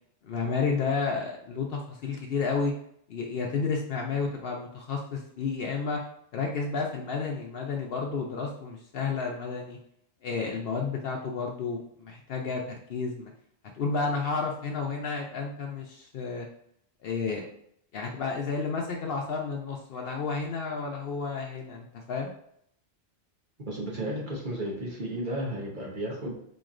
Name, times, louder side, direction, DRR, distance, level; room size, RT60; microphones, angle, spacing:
voice 1, 0.3-2.7 3.1-6.0 6.3-9.8 10.2-13.3 13.7-16.5 17.0-17.5 17.9-22.3, left 4 dB, 65° left, 1 dB, 0.8 m, -31 dB
voice 2, 23.7-26.3, right 1 dB, 50° right, -2 dB, 1.0 m, -33 dB
4.2 x 3.1 x 2.5 m, 0.70 s
omnidirectional pair, 1.1 m